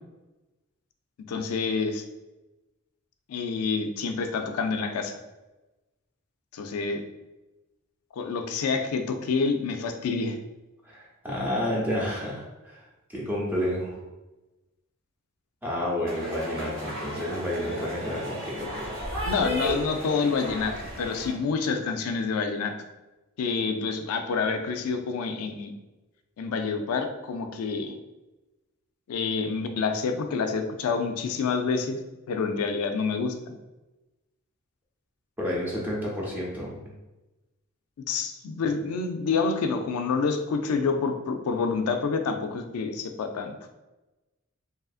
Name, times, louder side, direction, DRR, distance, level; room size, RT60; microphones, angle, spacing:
voice 1, 1.3-2.0 3.3-5.2 6.5-7.0 8.1-10.4 19.2-22.8 23.4-25.7 26.4-28.0 29.1-32.0 32.3-33.6 38.1-43.5, left 5 dB, 85° left, 6 dB, 0.3 m, -28 dB
voice 2, 10.8-12.8 13.1-14.0 15.6-18.7 35.4-36.9, left 1 dB, 10° right, -5 dB, 0.5 m, -30 dB
sound 1, 16.1-21.3, equal, 60° right, 1.0 m, -34 dB
2.7 x 2.4 x 2.4 m, 1.1 s
head